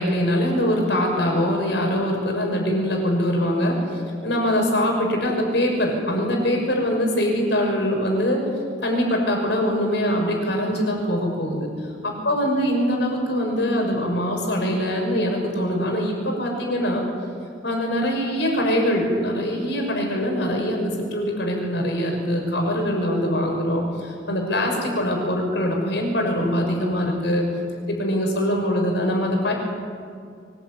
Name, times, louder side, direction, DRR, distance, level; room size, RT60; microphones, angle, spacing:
voice 1, 0.0-8.4 8.8-11.7 12.0-17.0 17.6-27.5 27.9-29.5, equal, 65° left, 1 dB, 6.3 m, -23 dB
24.0 x 19.5 x 9.4 m, 2.3 s
head